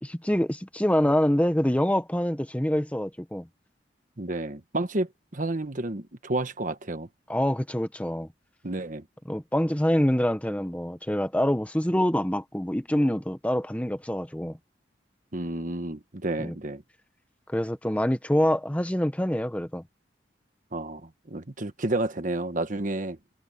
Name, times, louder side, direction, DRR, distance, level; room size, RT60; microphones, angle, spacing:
voice 1, 0.0-3.5 7.3-8.3 9.3-14.6 16.4-16.5 17.5-19.8, equal, 10° left, 1.1 m, -25 dB
voice 2, 4.2-7.1 8.6-9.0 15.3-16.8 20.7-23.2, right 2 dB, 45° right, 1.4 m, -31 dB
head